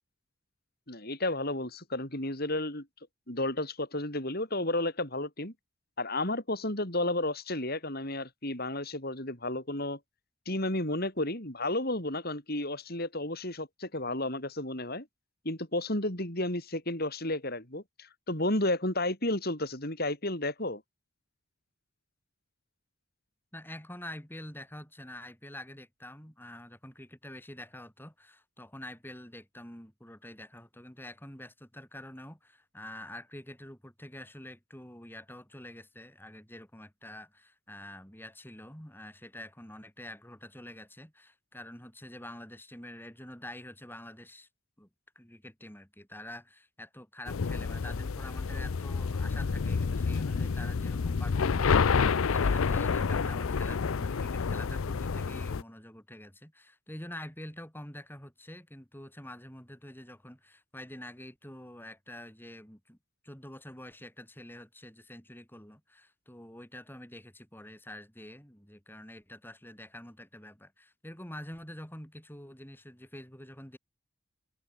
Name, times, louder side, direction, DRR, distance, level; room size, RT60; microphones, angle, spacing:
voice 1, 0.9-2.9 3.3-5.5 6.0-10.0 10.4-15.1 15.4-20.8, left 1 dB, 45° left, 6.7 m, -32 dB
voice 2, 23.5-44.5 44.8-44.9 45.1-63.0 63.2-73.8, left 1 dB, 10° left, 6.6 m, -47 dB
sound 1, 47.3-55.6, left 5 dB, 80° left, 0.6 m, -29 dB
head